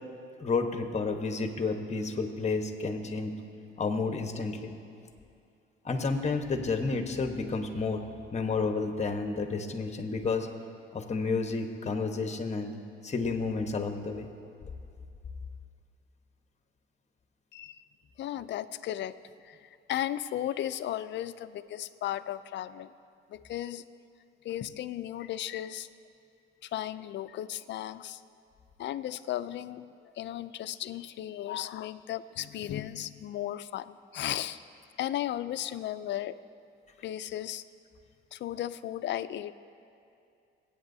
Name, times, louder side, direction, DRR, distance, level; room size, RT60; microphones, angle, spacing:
voice 1, 0.4-3.3 3.8-4.7 5.8-8.0 8.3-10.5 10.9-12.7 13.0-14.3, left 4 dB, 35° left, 5 dB, 1.2 m, -31 dB
voice 2, 17.5-17.8 18.2-22.9 23.3-23.8 24.4-25.9 26.6-28.2 28.8-34.6 35.0-36.4 37.0-37.6 38.3-39.5, left 12 dB, 65° left, 13 dB, 0.5 m, -35 dB
25.5 x 8.7 x 2.7 m, 2.5 s
cardioid pair, 90°, 20 cm